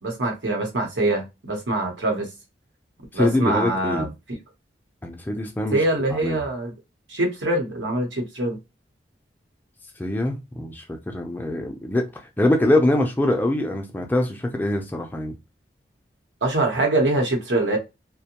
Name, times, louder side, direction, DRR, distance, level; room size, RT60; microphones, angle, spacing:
voice 1, 0.0-2.3 3.1-4.1 5.7-6.7 7.1-8.6 16.4-17.8, right 2 dB, 90° right, 1.0 m, -24 dB
voice 2, 3.2-4.1 5.0-5.8 6.1-6.4 10.0-10.8 11.1-12.0 12.4-15.3, left 1 dB, 10° left, 0.4 m, -23 dB
2.6 x 2.1 x 2.9 m
head